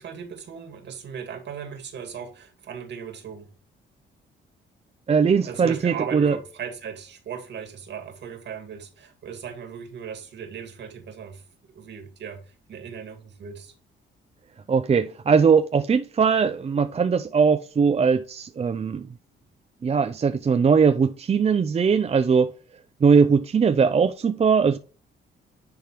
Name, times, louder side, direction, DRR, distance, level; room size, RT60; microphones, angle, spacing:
voice 1, 0.0-3.5 5.4-11.4 11.7-12.4 12.7-13.7, right 7 dB, 60° right, 2.2 m, -37 dB
voice 2, 5.1-6.4 14.7-19.1 19.8-22.5 23.0-24.8, right 6 dB, 30° right, 0.6 m, -20 dB
10.5 x 3.7 x 3.1 m
cardioid pair, 90°, 20 cm